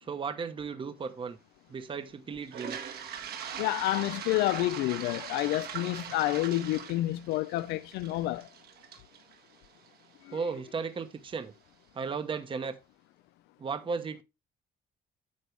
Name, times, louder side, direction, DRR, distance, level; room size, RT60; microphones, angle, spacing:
voice 1, 0.0-1.4 1.7-2.8 10.3-11.5 11.9-12.8 13.6-14.2, right 5 dB, 30° right, 1.0 m, -35 dB
Toilet flush, 2.4-10.4, right 8 dB, 70° right, 1.8 m, -41 dB
voice 2, 3.6-8.5 10.3-10.4, left 16 dB, 85° left, 0.4 m, -29 dB
9.5 x 6.5 x 3.2 m
cardioid pair, 110°, 17 cm